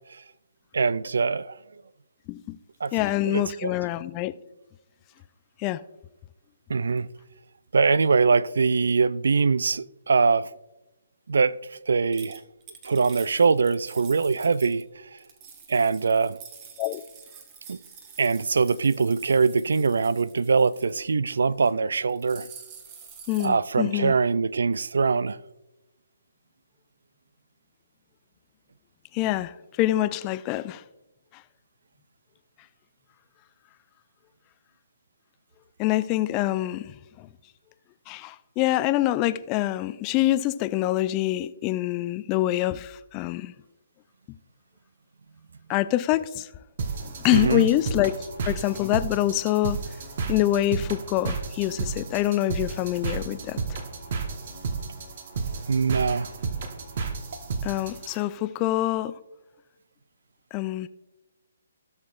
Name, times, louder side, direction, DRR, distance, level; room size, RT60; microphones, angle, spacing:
voice 1, 0.7-1.6 2.8-2.9 3.2-3.7 6.7-7.1 7.7-10.5 11.3-11.6 11.9-12.4 12.8-14.9 15.7-16.4 17.7-17.8 18.2-22.5 23.4-25.4 47.3-47.7 55.7-56.3, right 4 dB, 65° right, 0.3 m, -23 dB
voice 2, 2.9-4.3 5.6-5.8 16.8-17.0 23.3-24.1 29.1-30.8 35.8-37.3 38.1-43.5 45.7-46.5 47.0-48.1 48.5-49.8 50.3-53.6 57.6-59.1 60.5-60.9, left 15 dB, 25° left, 0.3 m, -25 dB
sound 1, 12.1-14.8 15.2-21.0 21.5-21.7 22.0-23.5, right 6 dB, 30° right, 1.2 m, -47 dB
sound 2, 46.8-58.2, right 4 dB, 50° right, 1.3 m, -32 dB
16.5 x 6.5 x 2.5 m
figure-of-eight pair, 135°, 0 cm